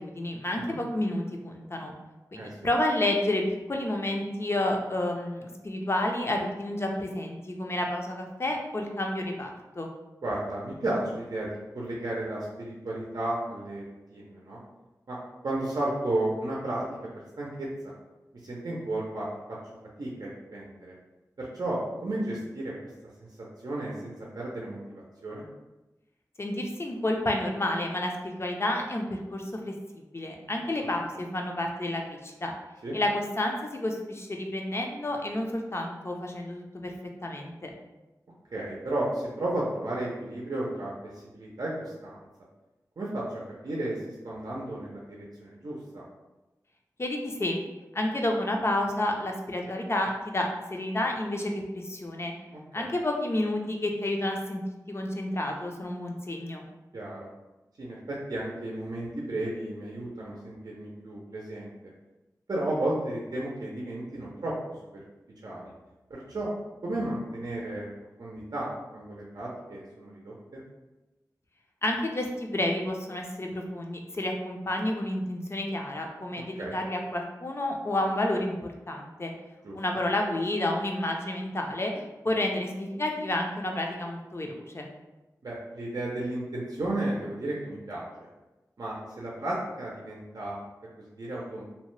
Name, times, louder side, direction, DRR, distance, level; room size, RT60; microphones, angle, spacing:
voice 1, 0.0-1.9 2.3-9.9 26.4-32.5 32.9-36.9 37.2-37.7 47.0-47.6 47.9-52.3 52.7-54.6 54.9-56.6 71.8-79.3 79.7-84.9, left 1 dB, 40° left, 1 dB, 0.5 m, -30 dB
voice 2, 10.2-14.6 15.1-15.2 15.4-16.8 17.4-17.9 18.4-19.6 20.0-20.9 21.4-22.7 23.2-23.3 23.6-25.4 32.8-32.9 38.5-40.9 41.2-42.2 43.0-44.0 44.2-46.0 52.8-52.9 56.9-57.3 57.8-61.7 62.5-64.5 65.4-65.6 66.1-66.5 66.8-67.9 68.2-70.6 76.6-76.7 79.6-79.8 85.4-88.1 88.8-90.6 91.2-91.6, right 1 dB, 70° right, -4 dB, 0.5 m, -33 dB
2.8 x 2.1 x 3.1 m, 1.1 s
wide cardioid pair, 45°, 7 cm